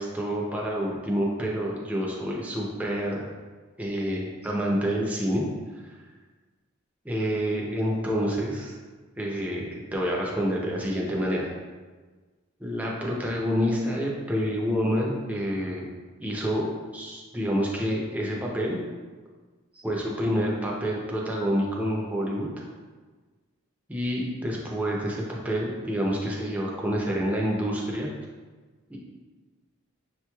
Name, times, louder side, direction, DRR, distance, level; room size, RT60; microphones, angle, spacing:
voice 1, 0.0-3.2 3.8-5.4 5.8-5.9 7.0-8.7 9.2-11.5 12.6-15.9 16.2-18.8 19.8-22.5 23.9-28.1 28.9-29.0, equal, 5° right, -3 dB, 0.5 m, -28 dB
6.3 x 3.0 x 2.3 m, 1.4 s
head